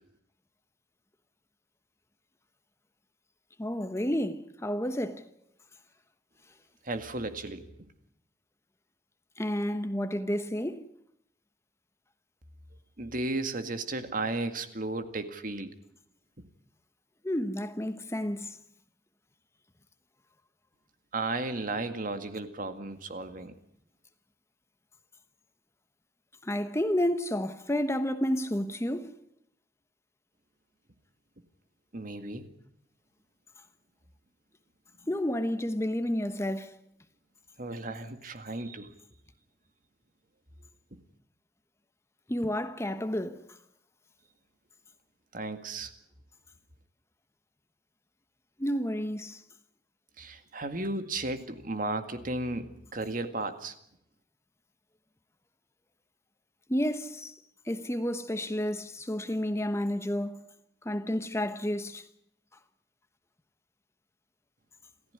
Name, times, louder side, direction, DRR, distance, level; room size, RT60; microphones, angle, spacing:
voice 1, 3.6-5.3 9.4-10.9 17.2-18.6 26.4-29.1 35.1-36.7 42.3-43.4 48.6-49.4 56.7-57.4 57.6-60.4 60.8-62.1, equal, 15° left, 1.2 m, -30 dB
voice 2, 6.8-7.7 13.0-15.7 16.4-16.5 21.1-23.5 31.9-32.5 37.6-38.9 40.9-41.0 45.3-45.9 50.2-53.8, right 2 dB, 50° right, 2.1 m, -34 dB
28.0 x 15.0 x 9.8 m
head